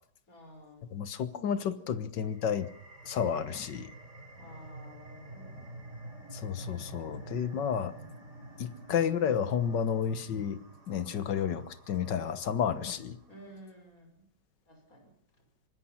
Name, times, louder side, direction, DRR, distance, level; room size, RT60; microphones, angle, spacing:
voice 1, 0.3-0.9 4.4-5.6 13.3-14.2 14.7-15.1, right 1 dB, 50° left, 3 dB, 6.3 m, -52 dB
voice 2, 0.9-2.7 3.1-3.9 6.3-7.9 8.6-10.6 10.9-13.2, left 8 dB, 75° left, 13 dB, 1.9 m, -31 dB
sound 1, 2.2-13.4, right 1 dB, 40° right, 4.3 m, -49 dB
24.5 x 20.5 x 5.8 m, 0.63 s
omnidirectional pair, 2.0 m